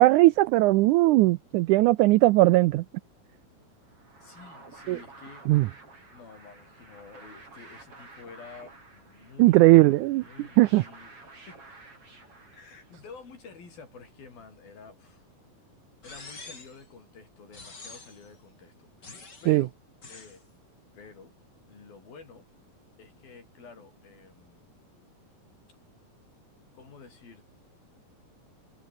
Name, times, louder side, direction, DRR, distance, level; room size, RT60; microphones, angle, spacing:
voice 1, 0.0-2.8 4.9-5.0 5.5-5.7 9.4-10.2 10.6-10.8 19.5-19.6, right 18 dB, 90° right, 1.7 m, -19 dB
sound 1, 3.8-13.2, right 3 dB, 40° right, 7.0 m, -51 dB
voice 2, 4.2-5.8 6.1-11.6 12.5-15.3 16.0-19.7 20.1-20.4 20.9-21.3 21.7-22.5 23.0-24.7 26.7-27.4, left 5 dB, 80° left, 7.7 m, -50 dB
sound 2, 16.0-16.8 17.5-18.3 19.0-19.6 20.0-20.4, left 3 dB, 30° left, 4.6 m, -46 dB
omnidirectional pair, 4.2 m